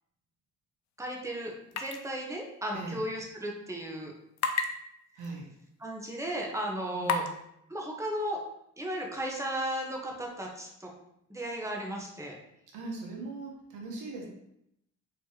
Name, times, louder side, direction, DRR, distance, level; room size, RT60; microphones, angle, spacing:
voice 1, 1.0-4.1 5.8-7.2 7.7-8.4 8.8-10.9 11.3-12.4, right 1 dB, 10° right, -1 dB, 0.9 m, -35 dB
sound 1, 1.7-2.0 2.3-2.4 4.4-4.7 5.2-5.3 6.0-6.1 7.0-7.3, left 6 dB, 65° left, 0.6 m, -29 dB
voice 2, 5.2-5.5 6.9-7.3 12.7-14.3, right 3 dB, 85° right, 0 dB, 1.1 m, -39 dB
4.3 x 3.1 x 2.9 m, 0.78 s
cardioid pair, 90°, 30 cm